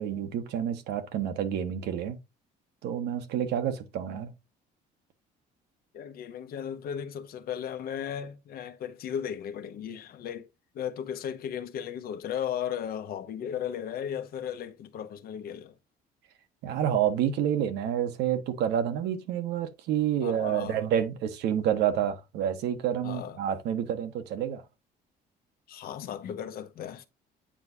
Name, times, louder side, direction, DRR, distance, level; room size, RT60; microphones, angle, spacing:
voice 1, 0.0-2.2 2.8-4.3 16.6-24.6, right 9 dB, 80° right, 1.3 m, -28 dB
voice 2, 5.9-10.5 10.7-15.8 20.2-20.8 23.0-23.4 25.7-27.1, left 9 dB, 65° left, 0.9 m, -36 dB
8.8 x 4.8 x 2.8 m
cardioid pair, 110°, 17 cm